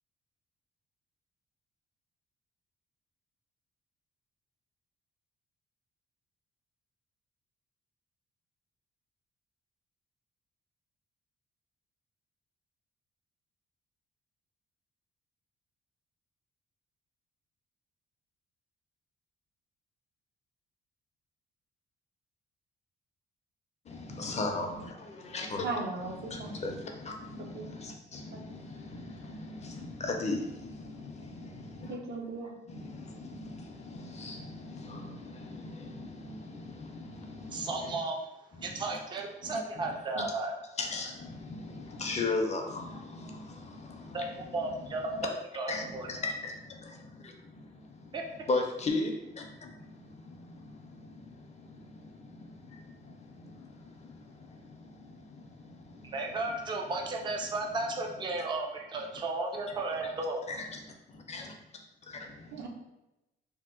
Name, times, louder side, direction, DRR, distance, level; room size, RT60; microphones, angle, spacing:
voice 1, 23.9-25.7 26.2-32.0 32.7-38.0 38.5-39.0 39.4-40.3 40.8-45.3 45.7-48.2 48.5-56.5 58.3-58.4 59.7-59.8 60.5-61.5 62.1-62.7, left 3 dB, 35° left, 3 dB, 0.5 m, -39 dB
voice 2, 25.6-26.6 27.4-27.7 28.3-28.4 31.9-32.5 62.5-62.7, right 3 dB, 60° right, -1 dB, 0.7 m, -37 dB
voice 3, 37.5-38.3 38.6-40.5 44.1-46.1 48.1-48.2 56.0-60.4, right 2 dB, 25° right, 1 dB, 0.4 m, -34 dB
2.8 x 2.0 x 3.6 m, 0.94 s
cardioid pair, 90°, 20 cm